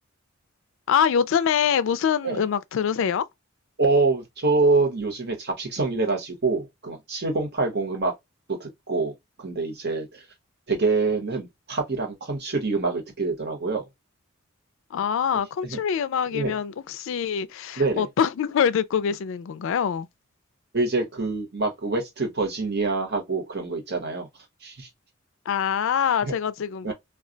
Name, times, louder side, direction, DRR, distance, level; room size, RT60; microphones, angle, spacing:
voice 1, 0.9-3.2 14.9-20.1 25.5-26.9, left 7 dB, 65° left, 0.3 m, -24 dB
voice 2, 3.8-8.1 8.5-9.1 9.4-10.2 10.7-13.9 15.6-15.8 16.3-16.5 17.8-18.1 20.7-24.3 24.6-24.9 26.2-26.3 26.8-26.9, right 3 dB, 50° right, 1.0 m, -25 dB
2.3 x 2.2 x 3.8 m
head